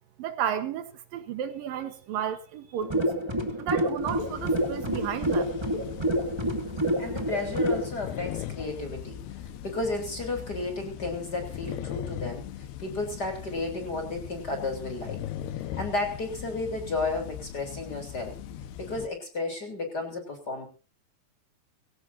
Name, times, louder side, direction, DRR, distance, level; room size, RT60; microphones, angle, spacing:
voice 1, 0.2-3.1 3.6-5.5, right 9 dB, 65° right, 2.6 m, -32 dB
sound 1, 2.8-7.9, equal, 15° right, 0.8 m, -28 dB
sound 2, 4.0-19.1, left 11 dB, 80° left, 3.1 m, -39 dB
voice 2, 7.0-15.2 15.8-18.4 18.8-20.7, left 2 dB, 25° left, 3.6 m, -33 dB
22.5 x 17.0 x 2.7 m
omnidirectional pair, 4.8 m